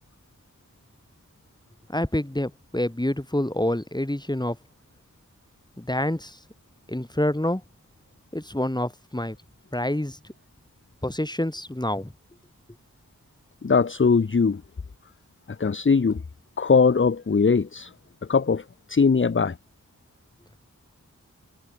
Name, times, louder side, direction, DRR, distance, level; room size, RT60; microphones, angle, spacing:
voice 1, 1.9-4.6 5.8-6.4 6.9-7.6 8.3-9.4 9.7-10.2 11.0-12.1, left 1 dB, 15° left, 3.2 m, -27 dB
voice 2, 13.6-14.6 15.5-16.2 16.6-17.9 18.3-19.6, left 5 dB, 40° left, 0.7 m, -21 dB
wide cardioid pair, 50°, 31 cm